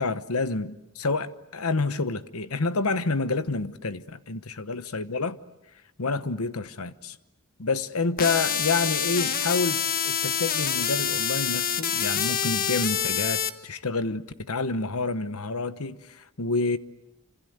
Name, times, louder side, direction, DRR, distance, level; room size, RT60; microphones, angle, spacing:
voice 1, 0.0-5.4 6.0-7.2 7.6-16.8, left 3 dB, 80° left, 1.1 m, -28 dB
sound 1, 8.2-13.5, left 8 dB, 40° left, 1.4 m, -26 dB
28.0 x 26.5 x 8.1 m
head